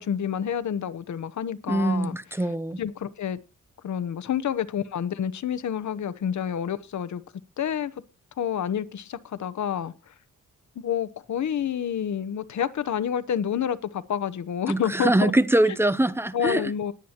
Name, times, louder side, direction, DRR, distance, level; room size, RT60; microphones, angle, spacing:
voice 1, 0.0-2.2 2.8-3.4 3.8-7.2 7.6-7.9 8.4-10.1 10.8-15.3 16.3-16.9, left 8 dB, 65° left, 0.9 m, -28 dB
voice 2, 1.7-2.8 14.7-16.7, right 1 dB, 10° right, 0.6 m, -23 dB
20.5 x 8.0 x 2.9 m
cardioid pair, 105°, 32 cm